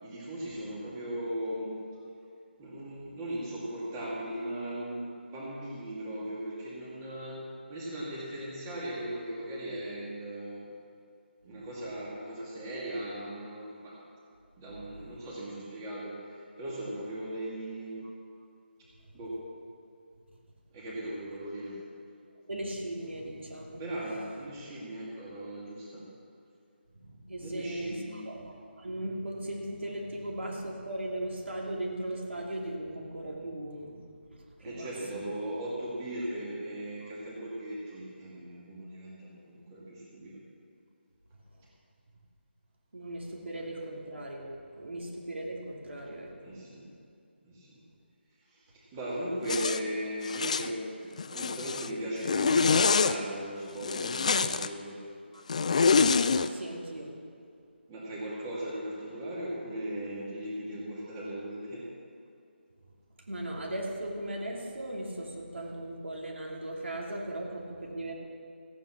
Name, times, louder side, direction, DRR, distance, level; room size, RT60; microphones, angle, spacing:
voice 1, 0.0-1.8 2.6-7.4 7.7-10.7 11.4-14.0 14.6-18.1 19.1-19.4 20.7-21.8 23.8-26.0 27.4-28.2 34.6-40.4 46.4-46.9 47.4-47.8 48.5-55.0 57.9-61.9, right 1 dB, 15° right, -5 dB, 2.4 m, -38 dB
voice 2, 22.5-23.8 26.9-34.0 34.6-34.9 37.0-37.1 42.9-46.5 49.4-49.6 55.3-55.4 56.5-57.1 63.3-68.1, right 1 dB, 80° right, -2 dB, 2.9 m, -38 dB
Zipper (clothing), 49.5-49.8 50.3-50.7 51.2-51.9 52.2-53.2 53.8-54.7 55.5-56.5, left 5 dB, 35° left, 0.4 m, -25 dB
14.5 x 9.2 x 5.9 m, 2.5 s
figure-of-eight pair, 170°, 6 cm